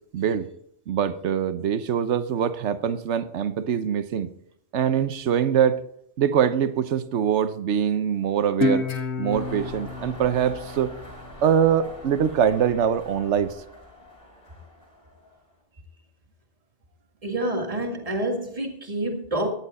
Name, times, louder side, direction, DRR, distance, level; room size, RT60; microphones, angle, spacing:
voice 1, 0.1-0.5 0.9-4.3 4.7-5.8 6.2-8.9 9.2-10.9 11.4-13.5, right 8 dB, 80° right, 1.1 m, -23 dB
Guitar, 8.6-11.8, left 3 dB, 70° left, 1.4 m, -29 dB
sound 1, 9.3-15.5, left 1 dB, 25° left, 5.8 m, -43 dB
voice 2, 17.2-19.5, right 1 dB, 30° right, 2.0 m, -27 dB
15.0 x 10.5 x 4.2 m
omnidirectional pair, 1.2 m